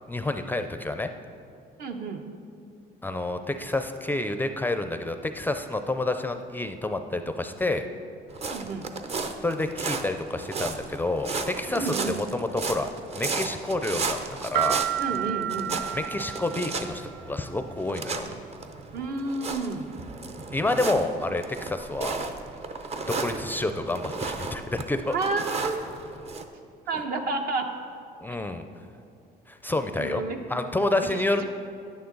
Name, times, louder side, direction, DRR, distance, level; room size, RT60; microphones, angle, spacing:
voice 1, 0.1-1.1 3.0-7.9 9.4-12.9 13.2-14.8 15.9-18.3 20.5-22.2 23.0-25.2 28.2-28.6 29.5-30.2 30.5-31.4, left 2 dB, 10° left, 7 dB, 0.4 m, -29 dB
voice 2, 1.8-2.2 8.5-8.9 11.7-12.3 15.0-15.7 18.9-19.9 25.1-25.8 26.9-27.7 30.0-30.6, right 3 dB, 65° right, 4 dB, 1.0 m, -30 dB
sound 1, 8.3-26.4, right 4 dB, 40° right, 0.7 m, -34 dB
sound 2, 14.5-17.2, right 12 dB, 85° right, 0.5 m, -30 dB
10.5 x 9.4 x 3.9 m, 2.5 s
cardioid pair, 110°, 17 cm